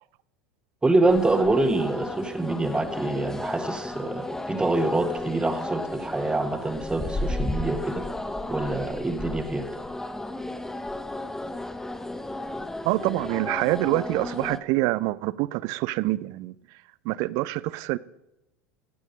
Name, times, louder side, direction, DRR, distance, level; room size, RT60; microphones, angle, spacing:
voice 1, 0.8-8.0 8.5-9.7, right 2 dB, 10° right, 1.3 m, -25 dB
sound 1, 1.1-14.6, left 1 dB, 5° left, 0.7 m, -34 dB
voice 2, 12.8-16.5 17.1-18.0, right 19 dB, 45° right, 0.4 m, -26 dB
15.0 x 9.1 x 5.1 m
figure-of-eight pair, 75°, 8 cm